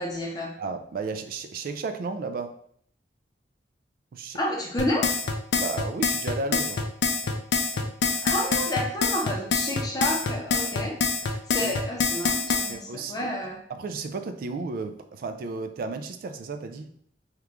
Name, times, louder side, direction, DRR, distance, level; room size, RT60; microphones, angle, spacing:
voice 1, 0.0-0.5 4.3-5.1 8.1-11.0 11.5-13.6, left 1 dB, 20° left, 0.6 m, -30 dB
voice 2, 0.6-2.6 4.1-4.4 5.5-6.9 11.6-11.7 12.7-13.3 13.7-16.9, right 4 dB, 50° right, 0.3 m, -33 dB
sound 1, 4.8-12.7, left 5 dB, 65° left, 0.4 m, -25 dB
3.0 x 2.3 x 3.4 m
head